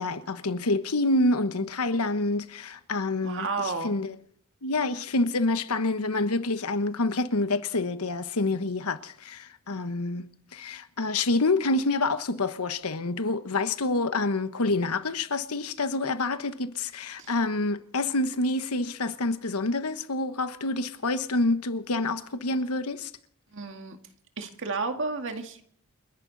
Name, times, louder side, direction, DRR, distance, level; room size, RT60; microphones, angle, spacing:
voice 1, 0.0-3.5 3.8-4.1 4.6-23.1, left 2 dB, 80° left, 1.2 m, -27 dB
voice 2, 3.2-3.9 17.2-17.3 23.5-24.0 24.4-25.6, right 4 dB, 60° right, 2.0 m, -32 dB
29.5 x 11.5 x 4.0 m
head